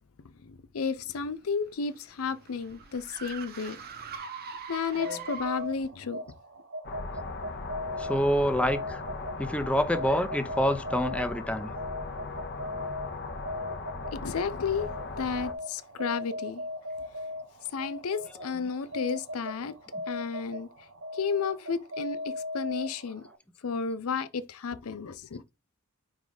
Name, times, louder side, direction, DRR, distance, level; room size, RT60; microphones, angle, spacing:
voice 1, 0.5-3.8 4.7-6.2 14.1-14.9 15.2-16.6 17.7-19.7 20.1-20.7 21.1-23.3 23.6-25.4, left 5 dB, 75° left, 0.5 m, -32 dB
sound 1, 1.4-5.9, right 5 dB, 45° right, 1.0 m, -42 dB
sound 2, 4.9-23.4, left 1 dB, 75° right, 1.9 m, -39 dB
sound 3, 6.8-15.5, left 3 dB, 55° left, 1.1 m, -38 dB
voice 2, 8.0-9.0 9.4-11.7, equal, 5° left, 0.7 m, -27 dB
5.1 x 4.9 x 4.0 m
head